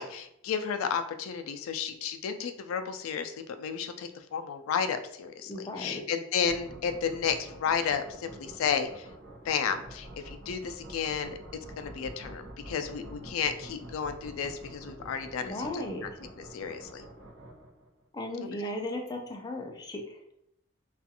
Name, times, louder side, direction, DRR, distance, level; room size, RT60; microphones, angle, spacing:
voice 1, 0.0-9.1 9.5-11.4 11.8-15.8 16.4-17.0, left 7 dB, 90° left, 9 dB, 0.3 m, -32 dB
voice 2, 5.4-6.0 15.5-16.0 18.1-20.4, left 1 dB, 20° left, 2 dB, 0.4 m, -36 dB
sound 1, 6.4-18.1, right 1 dB, 65° right, 0.8 m, -47 dB
2.5 x 2.3 x 2.7 m, 0.75 s
head